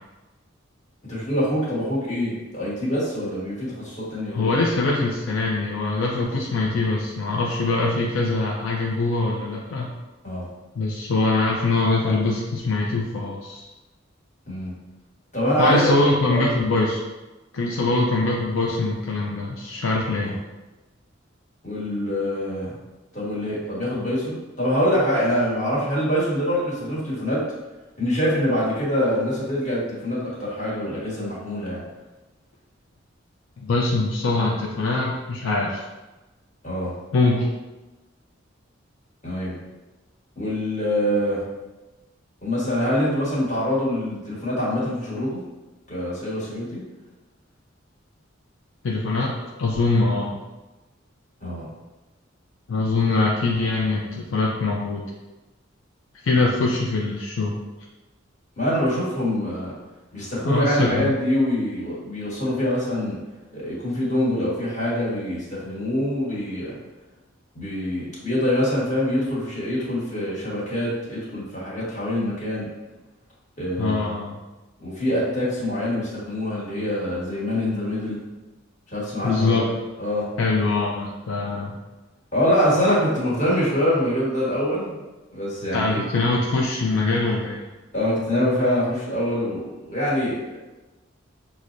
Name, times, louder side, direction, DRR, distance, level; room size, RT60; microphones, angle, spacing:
voice 1, 1.1-4.6 10.2-10.5 14.5-14.7 15.3-15.9 16.3-16.5 20.2-20.4 21.6-22.7 23.1-27.4 28.0-31.8 36.6-36.9 39.2-39.6 40.4-41.4 42.4-45.4 45.9-46.8 51.4-51.6 58.6-59.7 60.1-63.2 63.5-66.7 67.5-72.7 73.6-74.1 74.8-78.2 78.9-79.6 80.0-80.3 82.3-85.0 85.3-86.0 87.9-90.6, equal, 40° left, -7 dB, 1.3 m, -24 dB
voice 2, 4.3-9.9 10.8-13.7 15.6-17.0 17.5-20.4 33.6-35.8 37.1-37.5 48.8-50.4 52.7-55.0 56.2-57.6 60.4-61.1 73.8-74.4 79.2-79.6 80.4-81.8 85.7-87.6, left 3 dB, 75° left, -2 dB, 0.4 m, -23 dB
5.9 x 2.0 x 2.5 m, 1.1 s
head